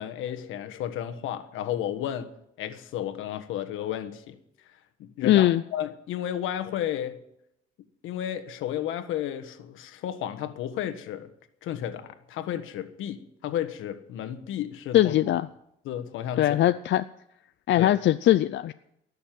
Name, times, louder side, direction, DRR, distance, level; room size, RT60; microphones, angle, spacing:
voice 1, 0.0-2.3 2.6-4.4 5.0-7.2 8.0-11.3 11.6-15.1 15.8-16.6 17.8-17.9, left 10 dB, 90° left, 1.4 m, -33 dB
voice 2, 5.2-5.6 14.9-15.5 16.4-17.0 17.7-18.7, left 13 dB, 65° left, 0.5 m, -21 dB
19.0 x 6.8 x 9.2 m
cardioid pair, 90°, 20 cm